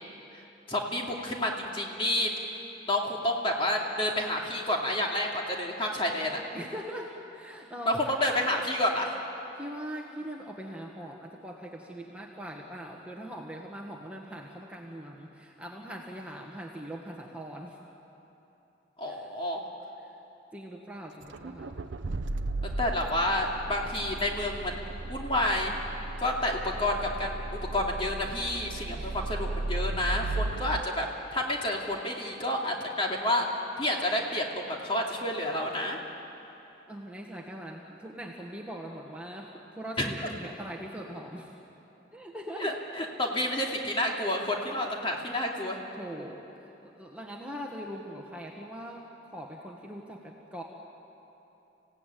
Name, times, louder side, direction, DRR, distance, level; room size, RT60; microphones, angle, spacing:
voice 1, 0.7-2.3 2.9-6.4 7.9-9.2 19.0-19.6 22.8-25.7 26.2-33.5 33.8-36.0 40.0-40.1 42.6-45.8, left 1 dB, 30° left, 0 dB, 2.5 m, -29 dB
voice 2, 6.5-8.2 9.6-17.8 19.0-19.3 20.1-20.2 20.5-21.9 29.0-29.2 36.9-41.5 42.1-42.7 42.9-43.1 44.6-44.9 46.0-50.6, equal, 5° right, -1 dB, 1.4 m, -41 dB
Accelerating revving vroom, 21.2-30.8, right 2 dB, 70° right, 0.7 m, -35 dB
27.0 x 16.5 x 9.2 m, 3.0 s
head